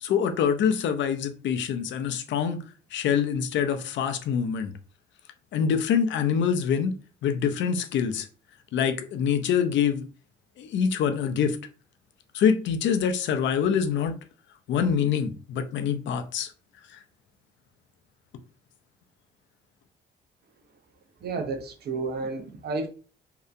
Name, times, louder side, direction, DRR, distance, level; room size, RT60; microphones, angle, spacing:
voice 1, 0.0-2.6 2.9-4.7 5.5-7.0 7.2-8.3 8.7-10.1 10.6-11.6 12.3-14.2 14.7-16.5 16.9-17.0, left 7 dB, 70° left, 0.5 m, -25 dB
voice 2, 21.2-22.9, right 3 dB, 55° right, 0.6 m, -31 dB
2.7 x 2.2 x 2.4 m
cardioid pair, 90°, 20 cm